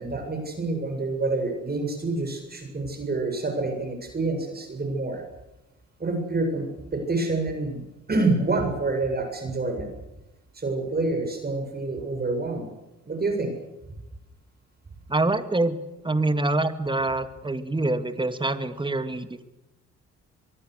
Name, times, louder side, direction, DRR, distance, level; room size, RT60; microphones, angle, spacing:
voice 1, 0.0-5.2 6.0-7.8 8.1-9.9 10.5-12.7 13.1-13.5, right 3 dB, 30° right, 4 dB, 7.6 m, -27 dB
voice 2, 15.1-15.8 16.0-19.4, right 2 dB, 15° right, 10 dB, 2.3 m, -25 dB
25.0 x 22.5 x 6.6 m, 0.95 s
cardioid pair, 90°, 30 cm